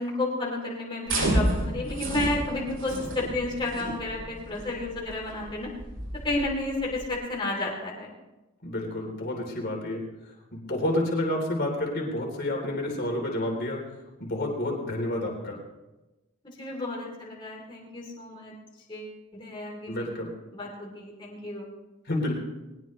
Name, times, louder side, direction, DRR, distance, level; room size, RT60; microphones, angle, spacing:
voice 1, 0.0-5.7 6.2-8.1 16.4-18.5 18.9-20.1 20.5-21.7, left 2 dB, 20° left, -3 dB, 3.2 m, -32 dB
sound 1, 1.1-7.1, right 1 dB, 60° right, 6.2 m, -31 dB
voice 2, 8.6-10.0 10.5-13.8 14.2-15.6 19.9-20.3 22.1-22.3, left 1 dB, 50° left, -1 dB, 3.5 m, -29 dB
20.5 x 19.5 x 3.2 m, 1.1 s
head